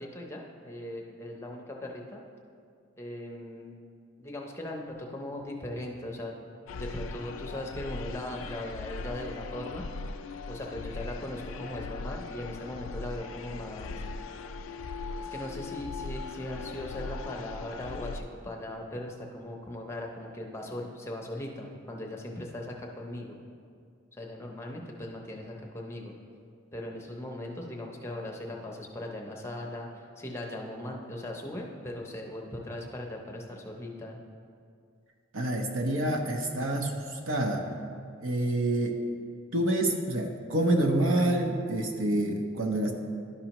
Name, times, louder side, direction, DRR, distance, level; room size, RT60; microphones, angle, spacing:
voice 1, 0.0-2.2 3.0-3.8 4.2-6.3 6.8-9.9 10.5-14.0 15.3-23.4 24.2-26.1 26.7-34.2, left 1 dB, 15° left, 0 dB, 0.6 m, -39 dB
sound 1, 6.7-18.2, left 3 dB, 80° left, 0.3 m, -39 dB
voice 2, 35.3-37.7 38.2-39.0 39.5-42.9, right 1 dB, 80° right, 3 dB, 0.8 m, -27 dB
11.5 x 5.4 x 3.0 m, 2.3 s
head